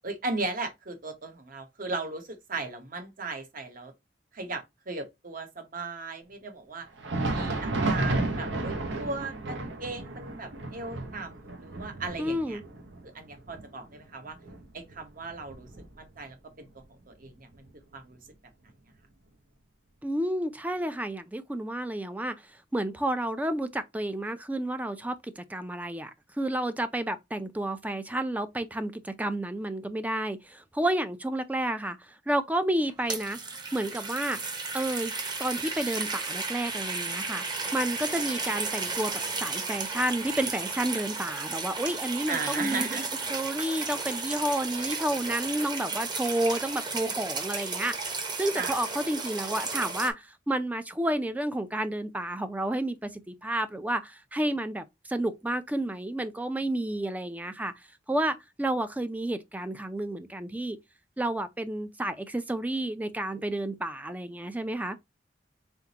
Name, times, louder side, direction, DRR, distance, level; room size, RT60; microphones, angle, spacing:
voice 1, 0.0-3.9 4.3-6.9 7.3-12.6 13.0-14.4 14.7-15.7 16.0-16.7 17.1-17.5 17.9-18.2 42.3-43.3 48.5-48.7, right 3 dB, 50° right, 1.1 m, -37 dB
Thunder, 6.9-16.3 16.7-16.8 17.5-17.7 18.7-18.8, right 2 dB, 85° right, 1.0 m, -33 dB
voice 2, 12.2-12.6 20.0-22.4 22.7-26.1 26.4-33.4 33.7-34.4 34.7-35.1 35.4-37.4 37.7-39.1 39.4-43.0 43.3-48.1 48.4-57.7 58.1-60.8 61.2-65.0, right 1 dB, 10° right, 0.4 m, -30 dB
sound 1, 32.9-50.1, right 4 dB, 25° right, 0.9 m, -34 dB
3.9 x 3.6 x 2.8 m
head